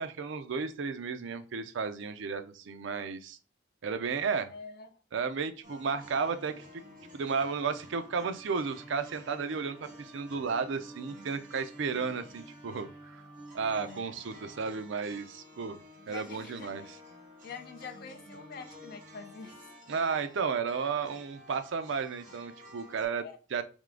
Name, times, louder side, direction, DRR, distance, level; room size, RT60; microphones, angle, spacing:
voice 1, 0.0-3.4 3.8-4.5 5.1-6.6 7.1-13.2 13.5-15.8 16.1-17.0 19.9-23.3 23.5-23.6, right 5 dB, 65° right, 0.5 m, -33 dB
voice 2, 4.5-4.9 13.7-14.1 16.1-16.9 17.4-19.7 23.2-23.4, left 5 dB, 55° left, 0.5 m, -46 dB
sound 1, 5.6-23.0, equal, 40° right, 1.6 m, -51 dB
3.6 x 3.2 x 3.7 m
head